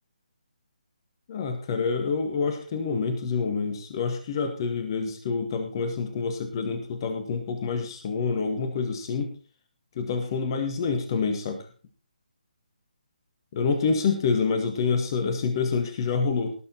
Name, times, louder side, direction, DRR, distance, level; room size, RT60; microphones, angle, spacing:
voice 1, 1.3-9.3 10.0-11.6 13.5-16.5, left 5 dB, 30° left, 7 dB, 1.9 m, -27 dB
18.5 x 7.5 x 4.3 m, 0.36 s
figure-of-eight pair, 145°, 5 cm